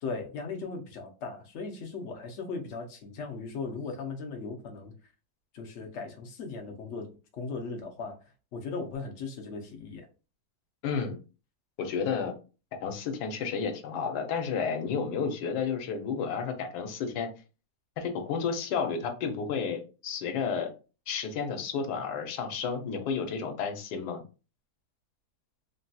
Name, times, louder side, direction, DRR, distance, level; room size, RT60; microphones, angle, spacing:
voice 1, 0.0-4.9 5.5-7.1 7.3-8.2 8.5-10.1, left 4 dB, 60° left, 0.8 m, -37 dB
voice 2, 10.8-11.2 11.8-12.3 12.8-17.3 18.0-20.7 21.1-24.2, left 6 dB, 75° left, 1.2 m, -31 dB
3.3 x 2.7 x 2.2 m
omnidirectional pair, 1.8 m